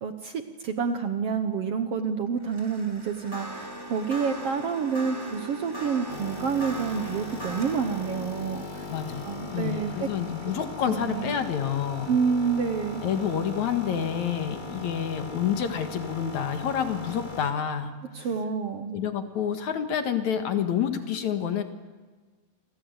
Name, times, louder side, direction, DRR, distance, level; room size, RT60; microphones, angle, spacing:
voice 1, 0.0-8.9 9.2-10.1 10.9-11.3 12.1-13.0 18.1-19.0, right 6 dB, 60° right, 8 dB, 1.7 m, -28 dB
sound 1, 2.4-11.7, right 1 dB, 5° right, 3.3 m, -40 dB
sound 2, 6.1-17.5, left 3 dB, 20° left, 1.3 m, -39 dB
voice 2, 8.9-12.1 13.0-17.9 18.9-21.6, left 8 dB, 65° left, 7 dB, 2.8 m, -28 dB
28.5 x 25.0 x 8.0 m, 1.4 s
omnidirectional pair, 3.8 m